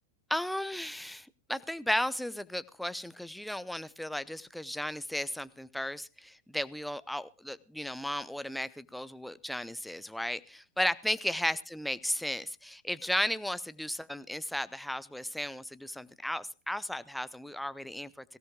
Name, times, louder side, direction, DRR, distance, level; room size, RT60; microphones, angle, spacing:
voice 1, 0.3-18.1, left 1 dB, ahead, 15 dB, 0.6 m, -35 dB
23.0 x 16.0 x 2.3 m, 0.32 s
figure-of-eight pair, 90°, 0 cm